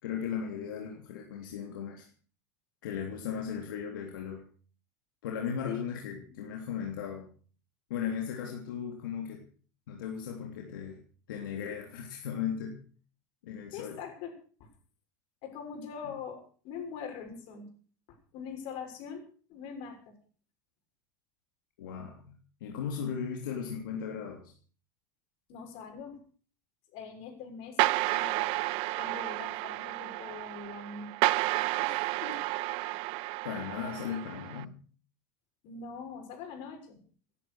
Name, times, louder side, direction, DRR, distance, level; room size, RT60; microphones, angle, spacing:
voice 1, 0.0-2.1 2.8-4.4 5.2-7.3 7.9-9.4 9.9-11.0 11.3-12.8 13.4-14.0 21.8-24.5 33.4-34.7, left 7 dB, 85° left, 1 dB, 3.3 m, -37 dB
voice 2, 13.7-14.3 14.6-14.7 15.4-17.7 18.3-19.2 19.5-20.2 25.5-26.2 26.9-28.6 29.0-31.1 31.8-32.4 33.5-33.6 35.6-37.0, left 6 dB, 60° left, 4 dB, 6.5 m, -42 dB
sound 1, 27.8-34.6, right 21 dB, 55° right, 0.6 m, -31 dB
18.5 x 10.5 x 6.4 m, 0.43 s
supercardioid pair, 120°, 11 cm